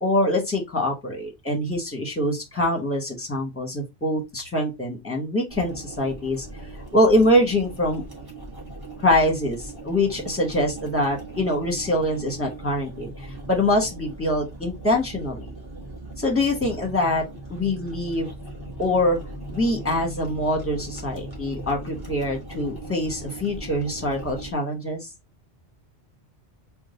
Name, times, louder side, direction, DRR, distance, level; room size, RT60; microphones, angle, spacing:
voice 1, 0.0-6.5 6.9-8.0 9.0-13.1 13.5-15.5 16.2-17.2 17.5-18.3 18.8-19.2 19.5-25.1, left 1 dB, 10° left, 1.2 m, -24 dB
sound 1, 5.5-24.5, right 2 dB, 20° right, 1.6 m, -39 dB
3.8 x 2.4 x 3.9 m
omnidirectional pair, 1.2 m